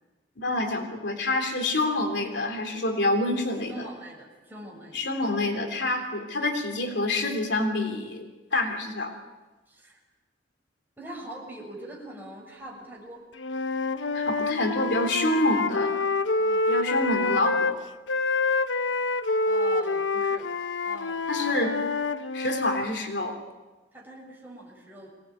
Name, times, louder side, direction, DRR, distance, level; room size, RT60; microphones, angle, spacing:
voice 1, 0.4-3.7 4.9-9.1 14.1-16.0 16.7-17.8 21.3-21.8 22.3-23.4, left 2 dB, 70° left, 4 dB, 3.3 m, -27 dB
voice 2, 3.7-5.0 9.7-10.0 11.0-13.2 16.4-16.7 19.5-20.5 20.8-21.7 23.9-25.1, right 1 dB, 10° right, -2 dB, 7.1 m, -43 dB
Wind instrument woodwind instrument, 13.4-17.8 18.1-22.9, left 3 dB, 85° left, 1.0 m, -27 dB
25.0 x 19.5 x 9.2 m, 1.2 s
head